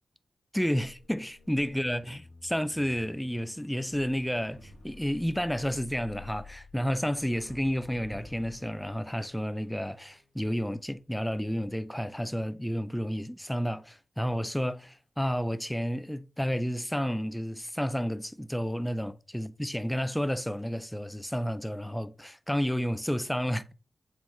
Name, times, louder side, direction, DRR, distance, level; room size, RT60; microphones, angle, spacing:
voice 1, 0.5-23.7, equal, 5° left, 0.4 m, -31 dB
sound 1, 0.9-11.1 11.4-11.7, left 3 dB, 55° left, 1.4 m, -51 dB
7.6 x 2.8 x 4.6 m
wide cardioid pair, 120°, 0 cm